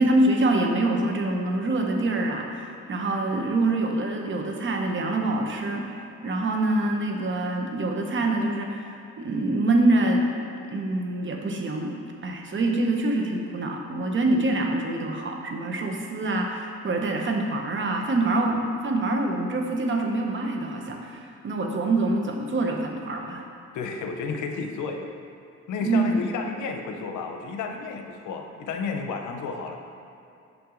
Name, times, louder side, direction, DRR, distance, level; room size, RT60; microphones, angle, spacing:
voice 1, 0.0-10.3 10.7-11.9 12.2-23.4 25.8-26.3, right 2 dB, 40° right, 2 dB, 0.8 m, -25 dB
voice 2, 23.7-25.1 25.7-29.8, left 4 dB, 75° left, 4 dB, 0.7 m, -32 dB
5.8 x 5.3 x 3.8 m, 2.7 s
cardioid pair, 90°, 30 cm